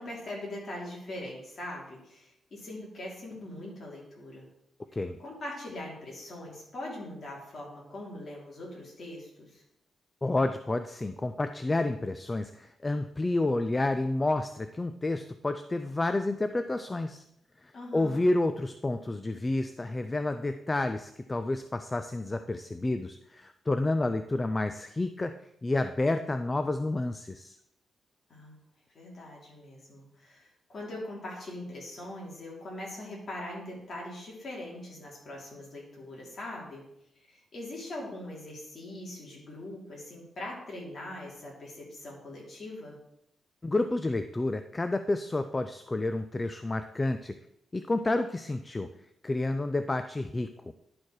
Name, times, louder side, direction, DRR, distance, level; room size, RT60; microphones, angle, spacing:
voice 1, 0.0-4.5 5.2-9.6 17.7-18.2 28.3-28.5 28.9-36.8 37.3-43.0, left 1 dB, 40° left, -3 dB, 3.1 m, -41 dB
voice 2, 10.2-17.2 17.6-27.6 43.6-47.3 47.7-48.9 49.2-50.7, left 2 dB, 20° left, 9 dB, 0.3 m, -30 dB
11.0 x 4.5 x 4.7 m, 0.80 s
wide cardioid pair, 140°, 0 cm